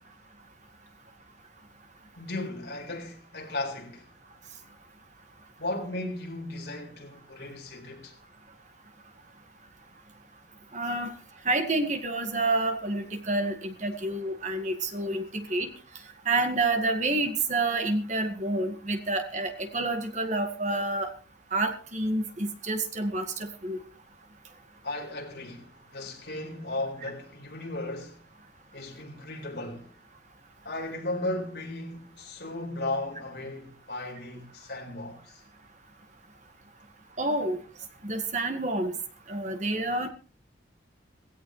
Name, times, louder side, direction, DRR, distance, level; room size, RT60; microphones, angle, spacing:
voice 1, 2.2-4.1 5.6-8.1 24.8-28.2 28.7-29.9 30.6-35.4, left 2 dB, 60° left, 4.4 m, -36 dB
voice 2, 10.7-11.1 11.5-15.7 16.3-21.1 21.5-23.8 37.2-37.6 38.0-38.9 39.3-40.1, right 2 dB, 40° right, 1.9 m, -28 dB
17.5 x 16.5 x 3.3 m
head